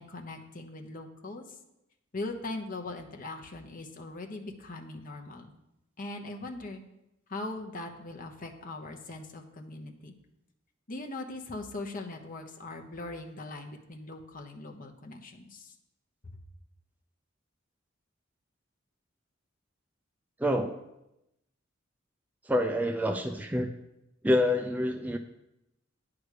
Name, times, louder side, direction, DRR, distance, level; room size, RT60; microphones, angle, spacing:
voice 1, 0.0-1.4 2.1-5.5 6.0-6.8 7.3-10.1 10.9-15.7 16.2-16.4, left 2 dB, 45° left, 3 dB, 1.0 m, -40 dB
voice 2, 20.4-20.7 22.5-23.7 24.2-25.2, left 1 dB, 10° right, 4 dB, 0.4 m, -27 dB
9.5 x 4.9 x 6.6 m, 0.88 s
head